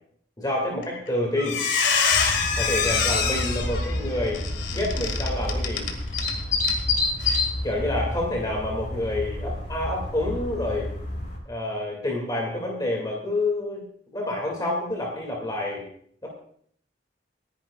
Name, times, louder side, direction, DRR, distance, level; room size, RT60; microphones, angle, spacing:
voice 1, 0.4-1.6 2.6-4.4 4.7-5.9 7.6-10.9 11.5-13.8 14.1-15.8 16.2-16.3, left 1 dB, 20° left, -1 dB, 2.3 m, -28 dB
Squeak, 0.8-1.1 1.4-6.3 6.6-6.8 7.2-7.4, left 6 dB, 70° left, 2.2 m, -25 dB
sound 1, 1.5-9.8, equal, 65° right, 2.5 m, -45 dB
sound 2, 2.1-11.4, left 2 dB, 45° left, 4.8 m, -29 dB
28.5 x 10.5 x 2.4 m, 0.64 s
head